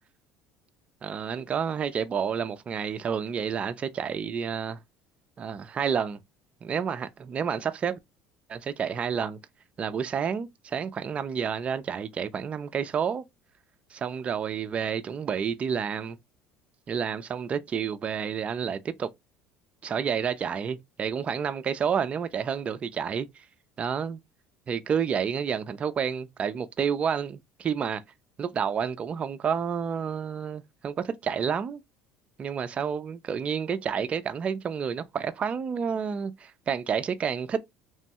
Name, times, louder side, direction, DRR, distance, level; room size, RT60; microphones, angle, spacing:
voice 1, 1.0-4.8 5.4-6.2 6.6-8.0 8.5-9.4 9.8-13.2 13.9-16.2 16.9-19.1 19.8-23.3 23.8-24.2 24.7-28.0 28.4-31.8 32.4-37.6, right 7 dB, 30° right, 0.4 m, -29 dB
3.0 x 2.2 x 2.7 m
cardioid pair, 115°, 4 cm